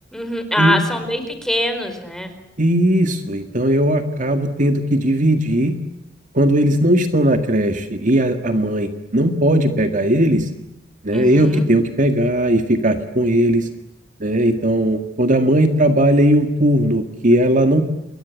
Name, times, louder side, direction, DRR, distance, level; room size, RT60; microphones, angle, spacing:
voice 1, 0.1-2.3 11.1-11.6, left 1 dB, 5° left, 7 dB, 4.6 m, -23 dB
voice 2, 2.6-5.8 6.3-10.5 11.0-13.7 14.2-17.8, right 1 dB, 45° right, 7 dB, 1.9 m, -17 dB
28.5 x 22.5 x 8.4 m, 0.89 s
head